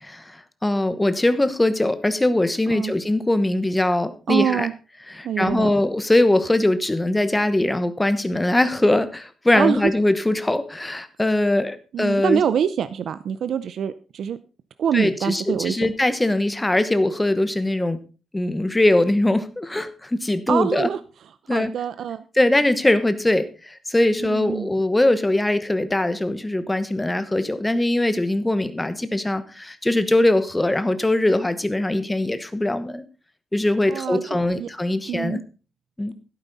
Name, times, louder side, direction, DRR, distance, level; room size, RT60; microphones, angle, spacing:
voice 1, 0.0-4.7 5.1-12.4 14.9-18.0 18.3-20.9 21.5-21.7 22.3-33.0 33.5-35.4 36.0-36.1, left 1 dB, 10° left, 12 dB, 1.1 m, -21 dB
voice 2, 4.3-4.7 5.2-5.7 9.5-9.9 11.9-14.4 14.8-15.8 20.5-21.0 21.5-22.2 24.2-24.7 33.9-34.7 35.1-35.4, right 8 dB, 70° right, 13 dB, 0.6 m, -25 dB
12.5 x 11.5 x 4.1 m, 0.33 s
wide cardioid pair, 155°, 0 cm